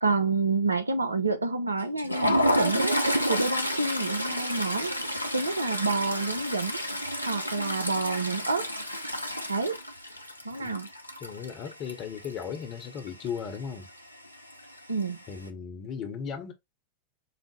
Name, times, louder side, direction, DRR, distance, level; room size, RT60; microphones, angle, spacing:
voice 1, 0.0-2.9 3.3-4.9 5.3-6.8 7.3-8.7 9.5-9.8 10.4-10.9 14.9-15.2, right 3 dB, 80° right, 0.5 m, -28 dB
Toilet flush, 1.8-12.6 12.8-13.1 13.4-13.6 14.5-15.0, equal, 90° left, 0.4 m, -30 dB
voice 2, 11.2-13.9 15.3-16.5, left 7 dB, 35° left, 1.0 m, -36 dB
4.9 x 2.0 x 3.2 m
figure-of-eight pair, 90°, 0 cm